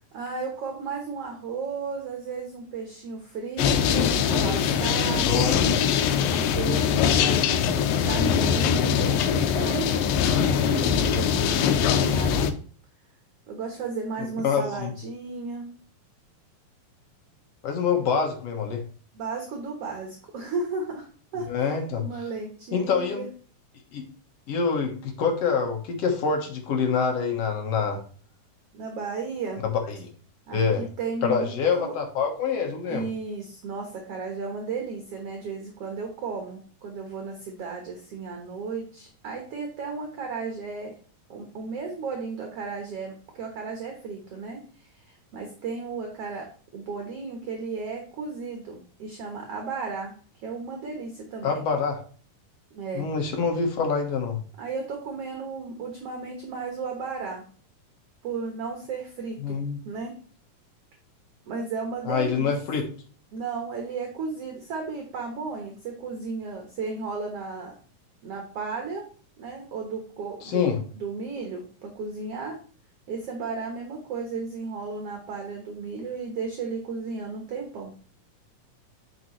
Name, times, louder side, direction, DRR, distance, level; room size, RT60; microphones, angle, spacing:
voice 1, 0.1-5.6 6.3-10.1 10.4-12.6 13.5-15.7 19.2-21.1 21.3-21.7 22.0-23.3 28.7-29.6 30.5-31.9 32.9-40.9 41.3-46.4 46.7-50.1 50.4-51.6 52.7-53.1 54.6-57.5 58.2-59.6 59.9-60.1 61.5-62.5 63.3-67.7 68.2-69.1 69.4-72.6 73.1-77.9, right 4 dB, 60° right, 2 dB, 1.9 m, -34 dB
sound 1, 3.6-12.5, left 7 dB, 85° left, 2.4 m, -22 dB
voice 2, 4.9-5.6 14.4-14.9 17.6-18.8 21.5-22.0 22.7-23.3 23.9-24.0 24.5-28.0 29.6-30.1 30.5-30.9 31.2-33.1 51.4-52.0 52.9-54.4 59.4-59.8 62.1-62.9 70.4-70.8, left 5 dB, 60° left, 3 dB, 1.9 m, -26 dB
8.6 x 5.3 x 3.1 m, 0.42 s
omnidirectional pair, 3.9 m